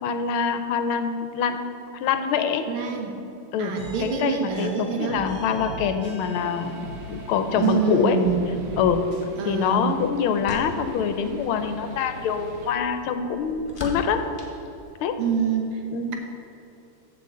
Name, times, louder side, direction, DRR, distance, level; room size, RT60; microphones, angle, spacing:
voice 1, 0.0-1.6 1.9-2.7 3.5-8.2 8.8-9.0 9.4-14.2 15.0-15.2 15.9-16.1, left 7 dB, 80° left, 8 dB, 1.5 m, -25 dB
voice 2, 2.7-3.2 3.6-5.2 7.6-8.5 9.4-10.0 15.2-15.8, right 6 dB, 90° right, 2 dB, 2.0 m, -26 dB
sound 1, 3.8-7.8 8.2-9.2, right 2 dB, 50° right, 1.8 m, -39 dB
sound 2, 6.2-12.8, right 2 dB, 75° right, 1.6 m, -41 dB
sound 3, 9.3-15.5, left 2 dB, 30° left, 1.0 m, -42 dB
14.5 x 5.5 x 3.8 m, 2.8 s
omnidirectional pair, 2.4 m